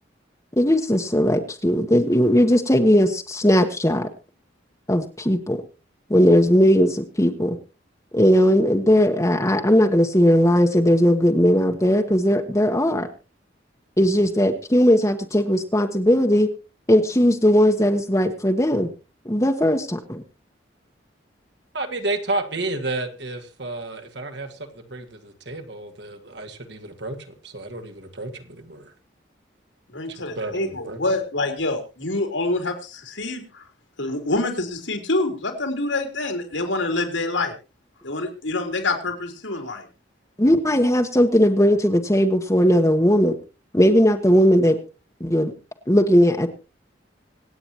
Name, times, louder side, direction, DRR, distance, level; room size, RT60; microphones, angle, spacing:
voice 1, 0.6-4.1 4.9-5.6 6.1-7.6 8.1-13.1 14.0-16.5 16.9-18.9 19.2-20.2 40.4-43.4 43.7-44.8 45.2-45.5 45.9-46.5, equal, 15° left, 3 dB, 1.1 m, -18 dB
voice 2, 21.7-28.9 30.1-31.0, right 2 dB, 65° right, 5 dB, 2.3 m, -31 dB
voice 3, 29.9-33.6 34.0-37.5 38.0-39.9, left 2 dB, 85° left, 5 dB, 3.6 m, -26 dB
26.0 x 8.8 x 3.0 m, 0.32 s
head